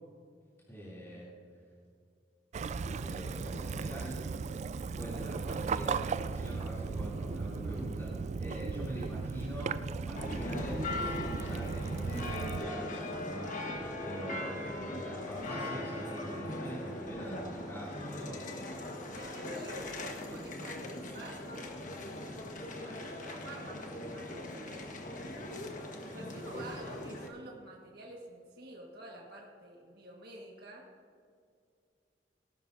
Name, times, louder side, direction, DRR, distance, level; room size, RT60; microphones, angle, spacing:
voice 1, 0.7-1.3 2.7-4.1 5.0-18.4 26.6-26.7, equal, 15° left, -9 dB, 2.8 m, -43 dB
Waves surf / Splash splatter / Trickle dribble, 2.5-12.6, right 5 dB, 40° right, 0.3 m, -36 dB
sound 1, 10.2-27.3, left 1 dB, 50° left, 1.4 m, -40 dB
voice 2, 19.1-21.4 22.5-25.6 26.1-30.9, right 1 dB, 60° right, -2 dB, 1.6 m, -49 dB
18.5 x 12.0 x 2.7 m, 2.3 s
head